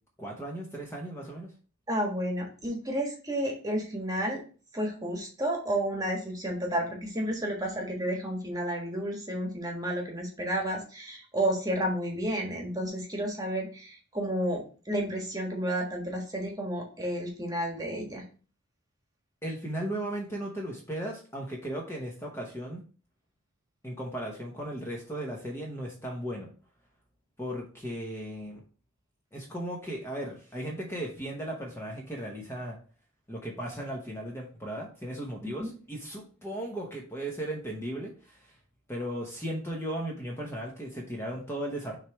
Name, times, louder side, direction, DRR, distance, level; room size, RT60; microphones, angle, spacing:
voice 1, 0.2-1.5 19.4-22.8 23.8-26.5 27.4-28.6 29.3-32.8 33.3-38.6 38.9-42.0, right 1 dB, 10° left, -1 dB, 1.0 m, -36 dB
voice 2, 1.9-4.4 4.7-18.2 35.6-35.7, right 1 dB, 15° right, 0 dB, 1.4 m, -31 dB
6.5 x 3.3 x 4.5 m, 0.39 s
head